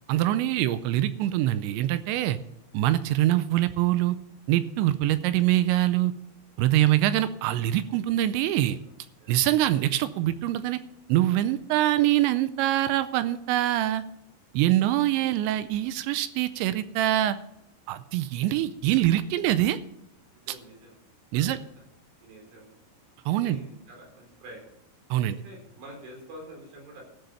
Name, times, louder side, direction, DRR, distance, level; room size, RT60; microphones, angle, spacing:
voice 1, 0.1-2.4 2.7-4.2 4.5-6.1 6.6-8.8 9.3-10.8 11.1-14.0 14.5-17.4 17.9-19.8 21.3-21.6 23.3-23.6 25.1-25.4, right 14 dB, 80° right, 13 dB, 2.8 m, -24 dB
voice 2, 8.6-8.9 9.2-9.3 19.4-19.6 20.3-21.0 21.3-21.6 22.2-22.9 23.3-24.7 25.4-27.0, right 1 dB, 65° right, -1 dB, 6.6 m, -47 dB
14.0 x 7.8 x 7.0 m, 0.81 s
omnidirectional pair, 5.4 m